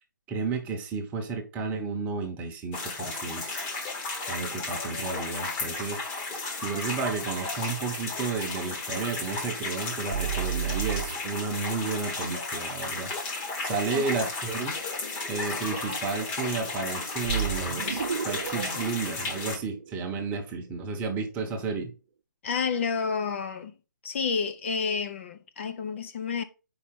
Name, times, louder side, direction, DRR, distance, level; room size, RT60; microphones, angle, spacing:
voice 1, 0.3-3.6 4.3-6.0 6.6-13.1 13.6-14.7 15.3-21.9, right 4 dB, 15° right, 0.9 m, -32 dB
sound 1, 2.7-19.6, left 3 dB, 20° left, 1.0 m, -34 dB
sound 2, 10.1-11.7 17.2-20.3, right 9 dB, 55° right, 0.6 m, -32 dB
voice 2, 22.4-23.7 24.0-26.4, left 5 dB, 40° left, 0.6 m, -30 dB
4.8 x 4.2 x 5.8 m
hypercardioid pair, 155°, 10 cm